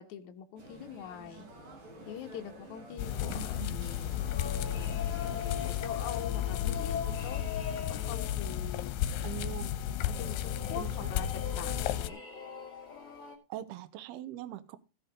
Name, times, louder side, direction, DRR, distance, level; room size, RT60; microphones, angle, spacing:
voice 1, 0.0-1.5 2.1-5.0 5.6-7.4 7.9-8.9 10.0-12.2, left 9 dB, 60° left, 2.3 m, -44 dB
sound 1, 0.6-6.2, right 1 dB, 60° right, 5.5 m, -50 dB
sound 2, 3.0-12.1, left 11 dB, 85° left, 2.8 m, -33 dB
voice 2, 3.3-3.8 9.2-9.8 10.7-11.1 13.5-14.8, right 13 dB, 80° right, 2.8 m, -42 dB
sound 3, 4.0-13.3, left 7 dB, 25° left, 2.8 m, -42 dB
15.5 x 6.7 x 5.1 m
omnidirectional pair, 4.7 m